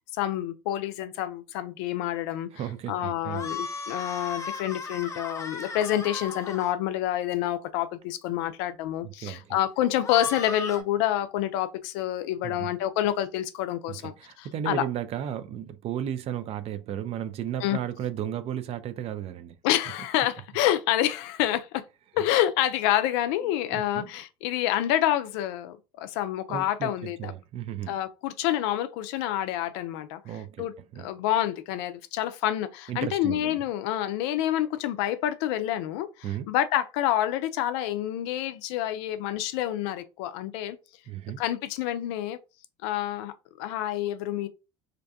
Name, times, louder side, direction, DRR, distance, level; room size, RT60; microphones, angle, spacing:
voice 1, 0.2-2.5 2.9-14.9 17.6-17.8 19.6-21.8 22.1-27.3 27.9-30.2 30.6-30.7 31.0-36.1 36.5-40.8 41.4-42.4 42.8-44.5, left 12 dB, 70° left, 0.4 m, -28 dB
voice 2, 2.5-3.5 9.0-9.6 12.4-12.7 13.9-19.6 23.7-24.1 26.5-27.9 30.2-30.7 30.9-31.1 32.9-33.6 36.2-36.5 41.1-41.4, right 10 dB, 45° right, 0.4 m, -34 dB
sound 1, 3.3-6.7 10.0-10.8, left 4 dB, 20° left, 0.6 m, -36 dB
2.5 x 2.2 x 2.6 m
hypercardioid pair, 75°, 14 cm